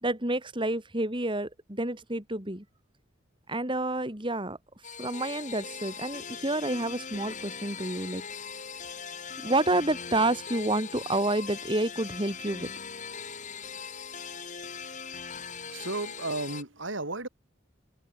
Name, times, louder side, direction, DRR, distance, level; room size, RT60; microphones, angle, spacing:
voice 1, 0.0-2.6 3.5-4.6 5.0-8.2 9.4-12.7, right 2 dB, 25° right, 3.6 m, -29 dB
sound 1, 4.8-16.6, left 6 dB, 40° left, 4.5 m, -40 dB
voice 2, 15.7-17.3, right 2 dB, 65° right, 4.3 m, -33 dB
head